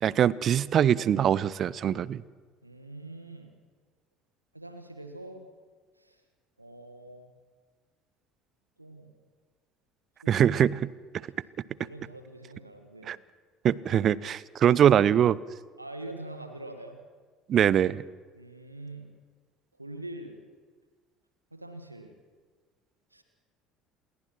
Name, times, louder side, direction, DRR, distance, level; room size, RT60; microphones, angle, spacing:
voice 1, 0.0-2.2 10.3-10.9 13.1-13.2 13.6-15.4 17.5-18.0, right 9 dB, 40° right, 21 dB, 0.7 m, -23 dB
voice 2, 2.6-3.5 4.5-5.5 6.0-6.2 6.6-7.3 8.8-9.1 10.2-10.3 11.8-13.2 15.8-17.0 18.3-19.1 19.8-20.4 21.5-22.1 23.1-23.2, right 1 dB, 90° right, 6 dB, 1.6 m, -44 dB
28.5 x 21.5 x 6.0 m, 1.5 s
figure-of-eight pair, 60°, 0 cm